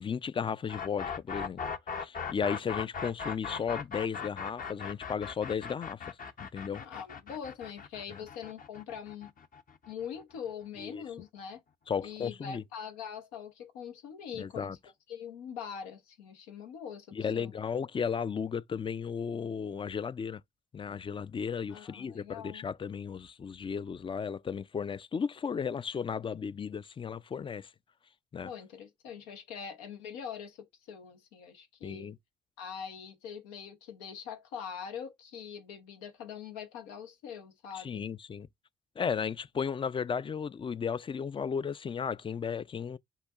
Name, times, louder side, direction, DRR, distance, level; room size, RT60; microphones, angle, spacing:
voice 1, 0.0-1.6 2.0-6.8 8.1-8.2 10.8-11.0 11.9-12.6 14.3-14.8 17.1-20.4 20.7-27.7 28.3-28.5 31.8-32.2 37.7-38.5 39.0-43.0, left 6 dB, 25° left, 0.4 m, -35 dB
sound 1, 0.7-10.5, left 6 dB, 45° left, 0.7 m, -39 dB
voice 2, 6.8-9.3 9.9-11.6 12.0-14.8 15.1-17.5 21.7-22.7 28.4-32.1 32.6-38.0, left 7 dB, 85° left, 0.8 m, -43 dB
5.6 x 3.7 x 2.4 m
hypercardioid pair, 50°, 20 cm